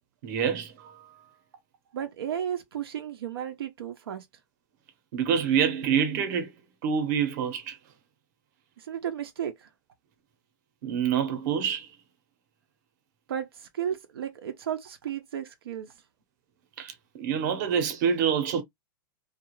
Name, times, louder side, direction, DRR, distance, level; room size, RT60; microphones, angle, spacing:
voice 1, 0.2-1.4 5.1-6.5 6.8-7.8 10.8-11.9 16.8-18.6, right 7 dB, 50° right, 0.9 m, -27 dB
voice 2, 1.9-4.3 8.8-9.7 13.3-15.9, right 9 dB, 90° right, 0.7 m, -34 dB
2.5 x 2.4 x 3.0 m
supercardioid pair, 150°, 12 cm